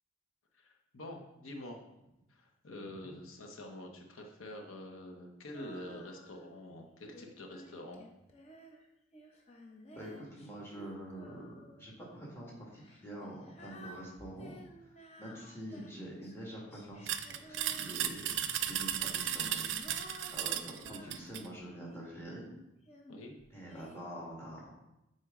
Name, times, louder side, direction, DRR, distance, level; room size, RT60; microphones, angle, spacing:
voice 1, 0.5-1.8 2.3-8.1 23.1-23.4, left 1 dB, 85° left, 2 dB, 0.9 m, -47 dB
Female singing, 5.5-6.6 7.1-11.9 12.7-18.3 19.0-22.2 22.9-24.0, equal, 30° left, 0.7 m, -54 dB
voice 2, 9.9-14.5 14.8-14.9 15.2-22.5 23.5-24.7, right 1 dB, 10° left, -4 dB, 1.6 m, -46 dB
sound 1, 17.1-21.5, right 10 dB, 65° right, 0.4 m, -35 dB
7.8 x 4.4 x 3.7 m, 0.89 s
head